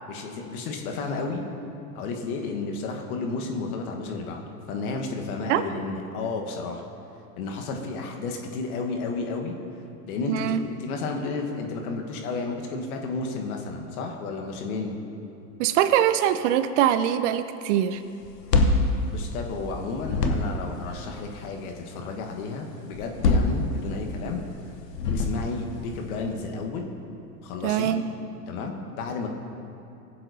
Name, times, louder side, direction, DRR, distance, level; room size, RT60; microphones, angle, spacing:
voice 1, 0.1-1.4 1.9-6.8 7.4-9.6 10.1-15.0 19.0-24.4 25.1-26.9 27.4-27.9 28.5-29.3, left 3 dB, 65° left, 2 dB, 1.3 m, -32 dB
voice 2, 10.3-10.6 15.6-18.0 27.6-28.1, right 10 dB, 50° right, 12 dB, 0.5 m, -23 dB
sound 1, 18.2-19.7 20.0-20.8 22.9-24.2 24.9-25.7, left 3 dB, 85° left, 1.0 m, -24 dB
15.5 x 7.5 x 2.7 m, 2.8 s
hypercardioid pair, 100°, 48 cm